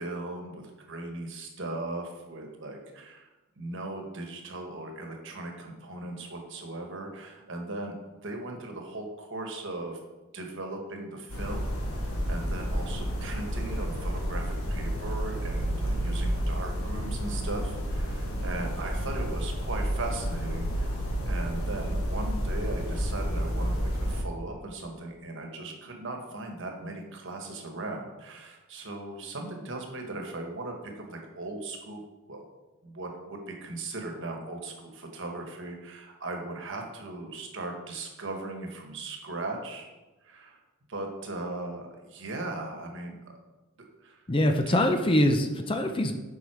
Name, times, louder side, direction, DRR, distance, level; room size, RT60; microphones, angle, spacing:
voice 1, 0.0-3.3 3.6-8.0 8.2-10.0 10.3-21.0 21.3-32.0 32.3-32.4 32.8-39.9 40.2-40.6 40.9-43.4 44.0-44.2 44.7-44.8, right 2 dB, 60° right, 2 dB, 1.4 m, -38 dB
sound 1, 11.3-24.2, equal, 80° left, 1.3 m, -30 dB
voice 2, 44.3-46.2, left 1 dB, 25° left, 5 dB, 0.5 m, -24 dB
7.6 x 5.5 x 4.8 m, 1.1 s
head